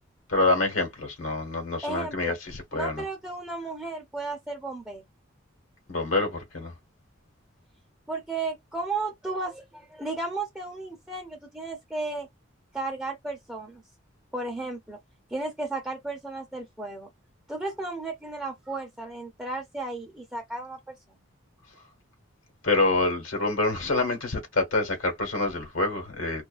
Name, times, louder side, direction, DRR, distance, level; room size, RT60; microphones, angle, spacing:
voice 1, 0.3-3.0 5.9-6.7 22.6-26.4, left 2 dB, 80° left, 1.2 m, -26 dB
voice 2, 1.8-2.3 2.7-5.0 8.1-12.3 12.7-13.8 14.3-15.0 15.3-17.1 17.5-20.8, right 3 dB, 5° right, 0.5 m, -34 dB
2.4 x 2.4 x 2.4 m
head